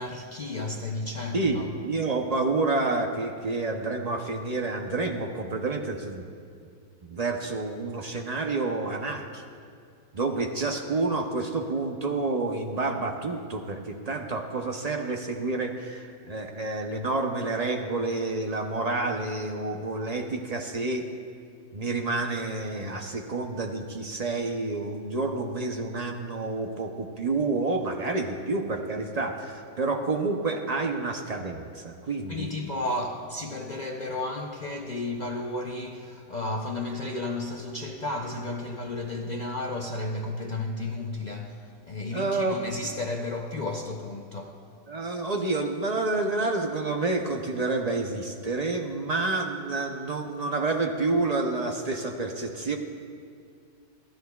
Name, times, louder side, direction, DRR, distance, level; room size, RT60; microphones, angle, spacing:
voice 1, 0.0-1.7 32.3-44.6, left 2 dB, 80° left, 0.4 m, -33 dB
voice 2, 1.3-6.3 7.0-9.4 10.1-21.0 21.7-32.5 42.1-42.6 44.9-52.8, right 3 dB, 45° right, 0.5 m, -29 dB
21.5 x 13.0 x 2.3 m
omnidirectional pair, 1.6 m